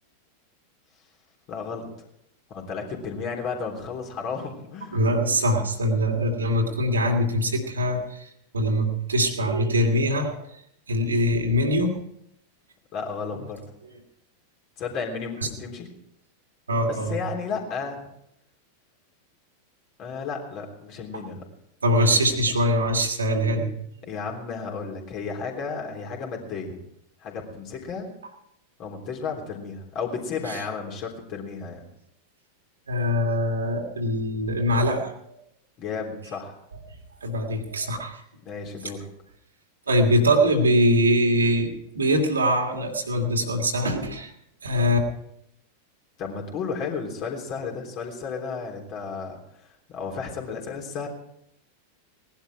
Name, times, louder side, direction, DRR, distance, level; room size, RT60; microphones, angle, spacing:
voice 1, 1.5-1.9 2.5-5.1 12.9-13.6 14.8-15.9 16.9-18.1 20.0-21.4 24.1-26.7 27.2-28.1 28.8-31.8 35.8-36.6 38.4-39.1 46.2-49.4 49.9-51.1, left 5 dB, 40° left, 1 dB, 3.4 m, -33 dB
voice 2, 4.9-8.2 8.5-10.4 10.9-11.9 16.7-17.2 21.8-23.7 30.5-30.6 32.9-35.1 37.2-38.2 39.9-41.7 41.9-44.3 44.6-45.0, equal, 75° right, 1 dB, 2.5 m, -22 dB
18.5 x 11.5 x 4.8 m, 0.77 s
figure-of-eight pair, 90°, 0 cm